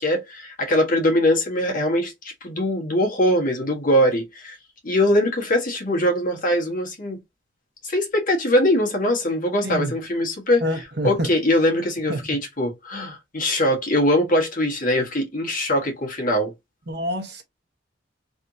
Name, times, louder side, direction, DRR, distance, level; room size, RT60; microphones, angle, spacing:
voice 1, 0.0-4.6 4.8-7.2 7.8-16.5, left 1 dB, 50° left, 1.4 m, -22 dB
voice 2, 10.6-11.3 12.1-12.3 16.9-17.4, right 1 dB, 60° right, 1.0 m, -27 dB
3.5 x 2.8 x 2.6 m
head